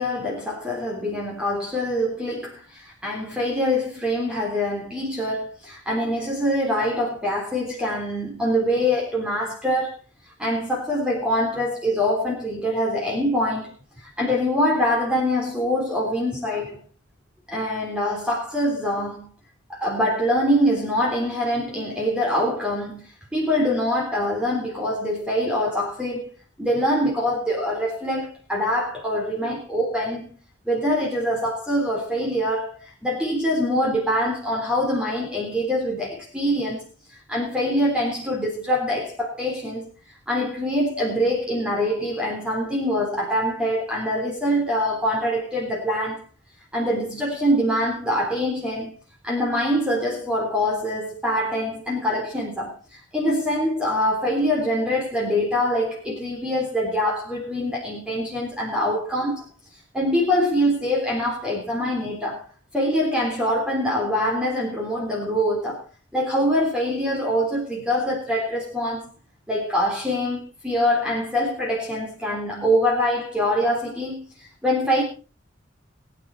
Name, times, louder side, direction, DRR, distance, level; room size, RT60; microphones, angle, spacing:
voice 1, 0.0-9.9 10.4-16.8 17.5-19.3 19.7-26.3 26.6-30.3 30.7-39.9 40.3-46.2 46.7-48.9 49.2-59.5 59.9-62.4 62.7-65.8 66.1-69.1 69.5-75.0, equal, 5° right, 3.6 m, -24 dB
21.0 x 9.7 x 4.3 m
head